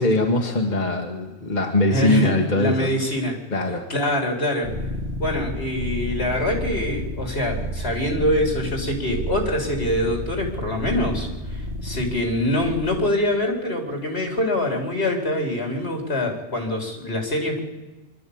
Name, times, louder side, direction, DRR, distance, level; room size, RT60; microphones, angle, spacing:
voice 1, 0.0-2.9 3.5-3.9, left 2 dB, 45° left, 2 dB, 1.8 m, -21 dB
voice 2, 1.9-3.3 3.9-4.7 5.2-17.6, left 1 dB, 75° left, 2 dB, 4.1 m, -24 dB
sound 1, 4.6-13.1, equal, 75° right, 2.2 m, -31 dB
25.0 x 12.5 x 8.7 m, 1.1 s
omnidirectional pair, 1.1 m